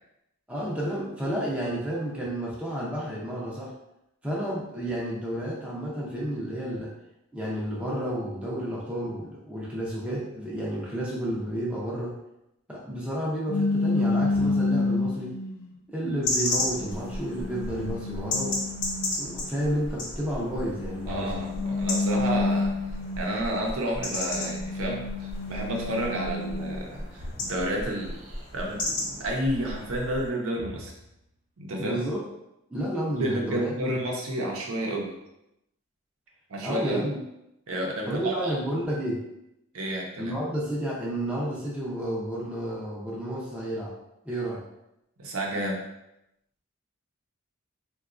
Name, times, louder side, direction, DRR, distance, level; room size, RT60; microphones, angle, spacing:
voice 1, 0.5-3.7 4.2-6.9 7.3-12.2 12.7-15.3 15.9-18.6 19.2-21.4 31.8-32.2 32.7-34.0 36.6-37.2 38.1-39.2 40.2-43.9 44.2-44.6, right 1 dB, 5° right, -6 dB, 0.5 m, -31 dB
sound 1, 13.5-15.7 16.3-19.4 20.6-23.5 24.0-26.9, left 3 dB, 85° left, 0.4 m, -29 dB
sound 2, 14.3-15.1 17.6-18.4 21.1-22.2 27.2-27.8 30.6-31.4, left 1 dB, 35° right, 0.8 m, -45 dB
sound 3, 16.2-30.3, left 2 dB, 50° left, 0.7 m, -34 dB
voice 2, 21.1-30.9 31.6-32.0 33.2-35.1 36.5-37.1 37.7-38.5 39.7-40.3 45.2-45.8, right 1 dB, 70° right, 0 dB, 0.6 m, -31 dB
3.8 x 2.3 x 2.4 m, 0.85 s
head